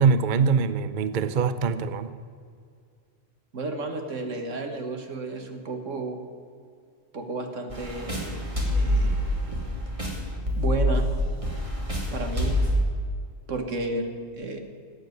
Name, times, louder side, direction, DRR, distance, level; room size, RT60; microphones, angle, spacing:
voice 1, 0.0-2.1, right 5 dB, 50° right, 12 dB, 0.6 m, -23 dB
voice 2, 3.5-6.2 7.1-9.2 10.6-11.1 12.1-12.6 13.5-14.6, right 2 dB, 75° right, 5 dB, 1.9 m, -32 dB
sound 1, 7.7-12.7, left 1 dB, 25° right, 2.8 m, -26 dB
15.0 x 9.0 x 9.2 m, 2.2 s
omnidirectional pair, 1.3 m